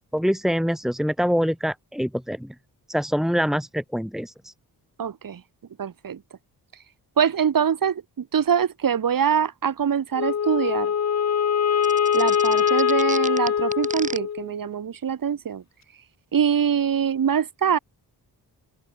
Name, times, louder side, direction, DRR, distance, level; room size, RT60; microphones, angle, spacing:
voice 1, 0.1-2.5 2.9-4.5, equal, ahead, 3.7 m, -25 dB
voice 2, 5.0-5.4 5.8-6.2 7.2-10.9 12.1-15.6 16.3-17.8, right 8 dB, 55° right, 1.5 m, -24 dB
Wind instrument woodwind instrument, 10.2-14.6, left 8 dB, 40° left, 0.7 m, -22 dB
sound 1, 11.8-14.2, right 2 dB, 20° right, 5.9 m, -33 dB
open air
wide cardioid pair, 120°, 40 cm